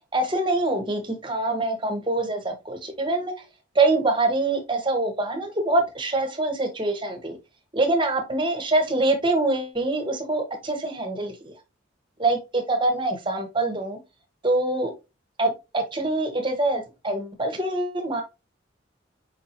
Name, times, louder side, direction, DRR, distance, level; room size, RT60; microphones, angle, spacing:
voice 1, 0.1-3.3 3.7-7.4 7.7-11.5 12.2-14.0 14.4-14.9 15.4-18.2, right 2 dB, 25° right, 0.9 m, -24 dB
4.7 x 3.8 x 2.8 m
head